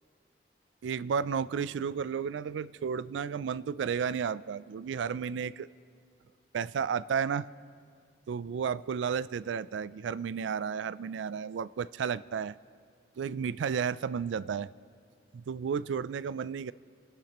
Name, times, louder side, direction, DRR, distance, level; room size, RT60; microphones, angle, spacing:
voice 1, 0.8-5.7 6.5-7.5 8.3-12.5 13.2-14.7 15.3-16.7, right 6 dB, 90° right, 19 dB, 0.3 m, -32 dB
30.0 x 11.5 x 3.0 m, 2.1 s
head